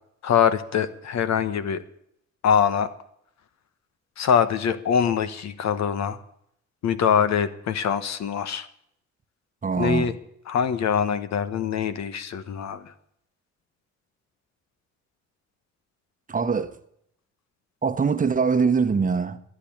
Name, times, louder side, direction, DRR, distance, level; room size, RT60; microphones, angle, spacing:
voice 1, 0.2-1.8 2.4-2.9 4.2-6.2 6.8-8.7 9.8-10.1 10.5-12.9, left 7 dB, 60° left, 1.2 m, -23 dB
voice 2, 9.6-10.1 16.3-16.7 17.8-19.4, right 5 dB, 25° right, 1.0 m, -23 dB
13.0 x 9.8 x 8.7 m
cardioid pair, 90°, 30 cm